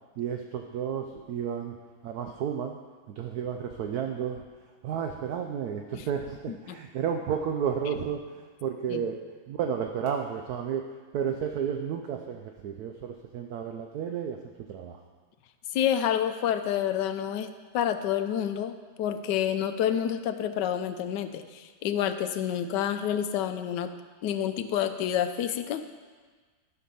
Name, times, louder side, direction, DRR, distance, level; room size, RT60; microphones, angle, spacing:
voice 1, 0.2-1.8 2.0-2.8 3.1-4.4 4.8-9.2 9.5-10.8 11.1-14.4 14.7-15.0, right 7 dB, 65° right, 4 dB, 1.0 m, -32 dB
voice 2, 15.7-23.9 24.2-25.9, left 9 dB, 75° left, 9 dB, 1.2 m, -28 dB
12.0 x 6.0 x 5.5 m, 1.5 s
omnidirectional pair, 2.0 m